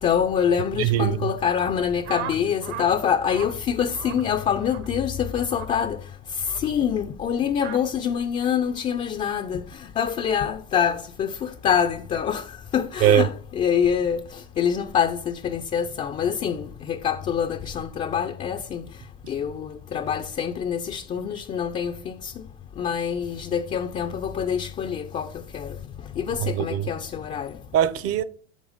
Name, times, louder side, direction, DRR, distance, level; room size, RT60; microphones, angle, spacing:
voice 1, 0.0-6.0 6.4-18.8 19.3-22.4 22.8-25.8 26.2-27.6, left 8 dB, 20° left, 0.3 m, -25 dB
voice 2, 0.8-1.2 13.0-13.2 26.4-26.9 27.7-28.2, right 10 dB, 40° right, 0.6 m, -20 dB
sound 1, 2.0-2.9 3.2-3.5 3.9-4.2 4.6-4.9 5.5-5.7 6.4-6.7 7.6-7.8, right 11 dB, 70° right, 1.1 m, -36 dB
7.2 x 3.4 x 4.9 m
supercardioid pair, 110°, 35 cm